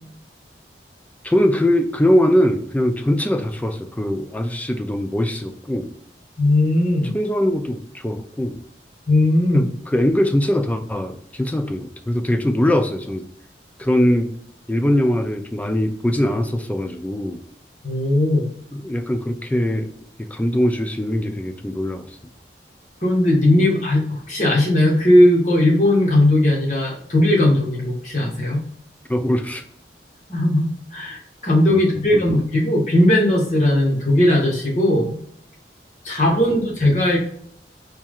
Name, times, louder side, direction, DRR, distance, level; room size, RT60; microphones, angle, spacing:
voice 1, 1.2-5.9 7.1-8.6 9.5-13.3 13.8-14.3 14.7-17.4 18.7-19.9 20.2-22.0 29.1-29.6 31.7-31.8 32.1-32.3, left 1 dB, 10° left, 7 dB, 0.3 m, -21 dB
voice 2, 6.4-7.2 9.1-9.7 17.8-18.5 23.0-28.6 30.3-30.6 30.9-31.2 31.4-35.1 36.0-37.2, left 1 dB, 40° left, -3 dB, 1.5 m, -17 dB
4.4 x 3.5 x 2.4 m, 0.66 s
head